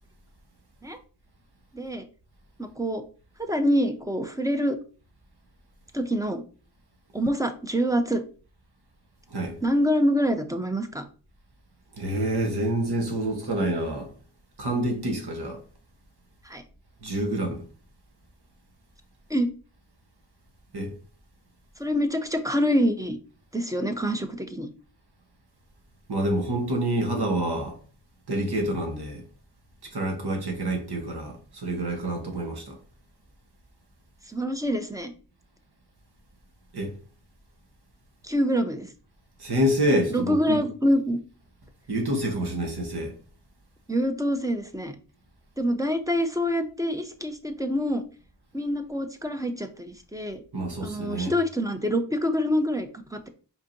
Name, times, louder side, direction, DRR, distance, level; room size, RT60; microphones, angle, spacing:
voice 1, 1.7-2.1 2.6-3.0 3.4-4.8 5.9-6.4 7.1-8.2 9.6-11.0 16.4-16.6 19.3-19.5 21.8-23.2 23.5-24.7 34.3-35.1 38.2-38.9 40.1-41.2 43.9-44.9 45.6-48.0 48.5-50.4 50.8-53.3, equal, 10° right, 0.8 m, -26 dB
voice 2, 12.0-14.1 14.6-15.6 17.0-17.6 20.7-20.9 26.1-27.8 28.3-29.2 29.8-32.8 36.7-36.9 39.4-40.6 41.9-43.1 50.5-51.3, right 1 dB, 60° right, 1.4 m, -27 dB
4.8 x 3.7 x 2.7 m
cardioid pair, 45°, 44 cm